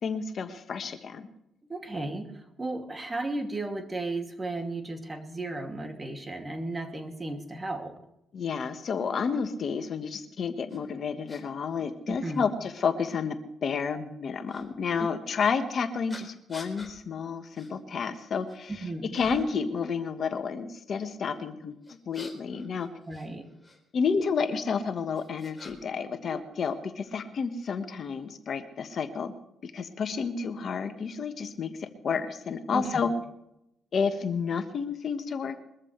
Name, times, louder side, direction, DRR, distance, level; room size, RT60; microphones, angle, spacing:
voice 1, 0.0-1.3 8.3-18.9 19.1-22.9 23.9-29.3 29.6-33.1 33.9-35.6, left 5 dB, 55° left, 7 dB, 1.4 m, -30 dB
voice 2, 1.7-8.0 12.1-12.4 15.0-15.1 18.8-19.2 23.1-23.5 32.7-33.0, right 2 dB, 20° right, 4 dB, 2.5 m, -34 dB
sound 1, 10.7-10.8 11.3-11.4 12.3-12.4 14.5-14.7 16.1-16.9 17.5-17.7 18.2-18.7 19.1-19.6 21.8-23.8 24.7-26.0 26.3-27.2, left 2 dB, 15° left, 3.6 m, -47 dB
22.5 x 14.0 x 3.3 m, 0.82 s
cardioid pair, 90°, 0 cm